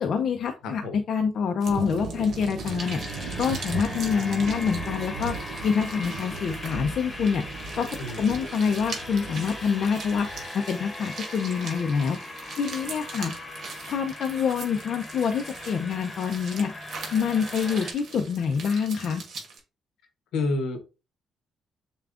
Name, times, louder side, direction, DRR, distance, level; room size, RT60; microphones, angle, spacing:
voice 1, 0.0-3.0 3.4-5.4 5.6-7.4 7.8-7.9 8.2-12.2 12.6-13.3 13.9-16.7 17.1-19.2, left 6 dB, 60° left, 4 dB, 0.5 m, -26 dB
voice 2, 0.6-0.9 4.1-4.6 8.0-8.4 13.1-13.3 20.3-20.8, left 2 dB, 85° left, 6 dB, 1.0 m, -31 dB
sound 1, 1.6-19.6, right 4 dB, 65° right, 1.3 m, -42 dB
sound 2, 1.7-10.5, right 3 dB, 85° right, 0.6 m, -37 dB
sound 3, 2.8-17.9, left 1 dB, 25° left, 1.1 m, -39 dB
6.7 x 2.3 x 2.5 m, 0.30 s
cardioid pair, 90°, 0 cm